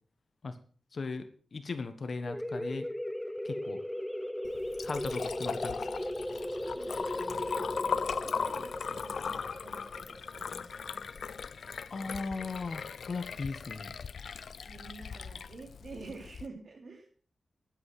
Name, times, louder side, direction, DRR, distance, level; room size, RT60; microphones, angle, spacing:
voice 1, 0.9-2.9 3.4-3.8 4.8-5.9 11.9-13.9, left 4 dB, 50° left, 9 dB, 1.4 m, -38 dB
sound 1, 2.3-11.6, left 1 dB, 5° left, 0.7 m, -37 dB
Liquid, 4.4-16.5, left 6 dB, 80° left, 0.5 m, -38 dB
voice 2, 6.7-11.0 14.6-17.1, right 3 dB, 55° right, 3 dB, 3.3 m, -49 dB
11.5 x 8.6 x 6.1 m, 0.42 s
wide cardioid pair, 140°, 0 cm